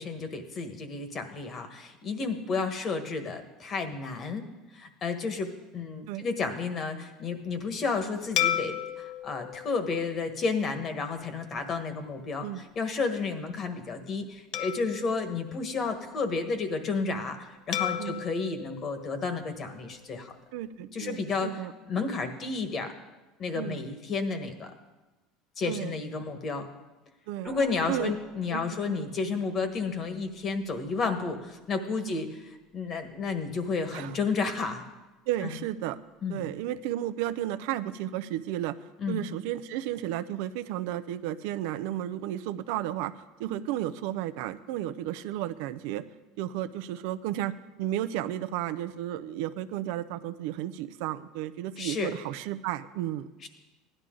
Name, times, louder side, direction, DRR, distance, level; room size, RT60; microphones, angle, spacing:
voice 1, 0.0-4.4 4.7-20.4 20.9-21.5 21.8-22.9 23.4-24.7 25.6-26.7 27.4-34.8 35.4-35.5 36.2-36.4 39.0-39.2 51.8-52.1 53.4-53.5, left 4 dB, 40° left, 7 dB, 1.5 m, -32 dB
sound 1, 8.4-11.0 11.6-11.8 14.5-16.3 17.7-20.0, left 11 dB, 60° left, 0.8 m, -35 dB
voice 2, 20.5-21.7 23.5-23.8 25.6-26.0 27.3-27.5 27.9-28.1 28.5-29.1 32.0-32.2 33.9-34.2 35.3-36.0 36.3-38.8 39.1-46.0 46.4-53.3, right 12 dB, 75° right, 13 dB, 0.6 m, -33 dB
sound 2, 27.4-31.6 33.3-33.7, right 5 dB, 30° right, 1.4 m, -50 dB
16.0 x 11.0 x 3.9 m, 1.1 s
supercardioid pair, 110°, 0 cm